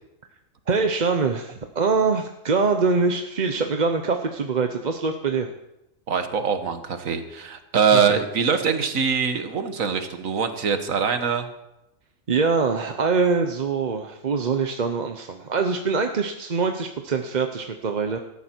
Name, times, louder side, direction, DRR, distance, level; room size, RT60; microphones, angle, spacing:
voice 1, 0.7-5.5 7.9-8.2 12.3-18.2, right 4 dB, 40° right, 5 dB, 0.8 m, -24 dB
voice 2, 6.1-11.5, right 6 dB, 75° right, 8 dB, 1.7 m, -23 dB
17.5 x 14.0 x 4.5 m, 0.89 s
omnidirectional pair, 1.4 m